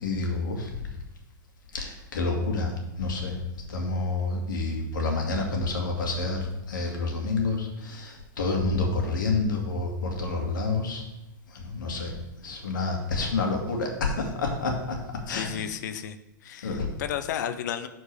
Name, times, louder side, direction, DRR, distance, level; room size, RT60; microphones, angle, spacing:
voice 1, 0.0-0.9 1.7-3.4 3.7-11.0 11.5-12.1 12.4-15.0 15.3-15.6 16.6-16.9, left 3 dB, 85° left, 1 dB, 1.9 m, -28 dB
voice 2, 15.3-16.2 16.4-17.9, left 9 dB, 65° left, 10 dB, 0.7 m, -33 dB
13.0 x 4.4 x 3.4 m, 0.94 s
hypercardioid pair, 115°, 10 cm